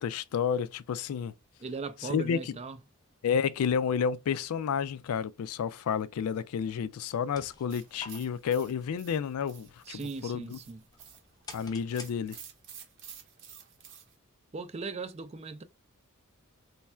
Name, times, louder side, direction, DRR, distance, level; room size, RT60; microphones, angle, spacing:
voice 1, 0.0-1.3 2.0-2.6 3.2-10.6 11.5-12.4, left 7 dB, 75° left, 0.3 m, -31 dB
voice 2, 1.6-2.8 9.9-10.8 14.5-15.6, right 4 dB, 30° right, 0.4 m, -38 dB
sound 1, 7.1-12.7, left 2 dB, 15° left, 0.6 m, -52 dB
sound 2, 7.7-14.2, right 8 dB, 55° right, 0.8 m, -51 dB
3.1 x 2.3 x 4.2 m
head